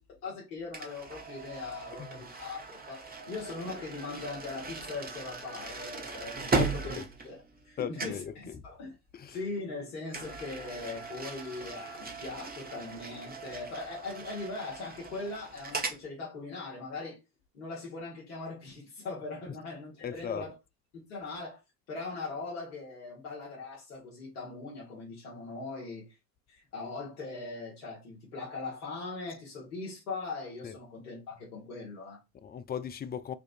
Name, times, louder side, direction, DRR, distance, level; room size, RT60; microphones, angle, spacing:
voice 1, 0.2-8.9 9.3-17.2 17.5-20.5 20.9-21.6 21.9-26.0 26.5-32.2, left 3 dB, 80° left, 1.5 m, -40 dB
sound 1, 0.7-7.7 8.0-8.3 10.1-16.0, right 4 dB, 20° right, 1.0 m, -38 dB
voice 2, 1.9-2.3 6.5-7.1 7.8-8.7 9.1-9.5 19.4-19.6 20.0-20.5 30.6-30.8 32.3-33.3, left 8 dB, 25° left, 0.4 m, -38 dB
4.5 x 2.4 x 2.5 m
hypercardioid pair, 60°, 43 cm